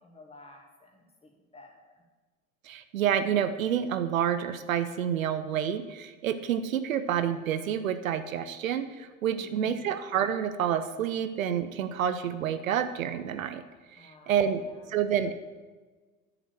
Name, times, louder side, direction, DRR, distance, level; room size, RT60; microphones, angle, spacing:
voice 1, 0.0-2.0 9.3-9.9 13.9-14.8, left 2 dB, 15° left, 0 dB, 2.4 m, -53 dB
voice 2, 2.6-13.6 14.0-14.6 14.9-15.3, right 9 dB, 75° right, 10 dB, 0.8 m, -28 dB
9.6 x 5.1 x 7.7 m, 1.3 s
figure-of-eight pair, 80°, 41 cm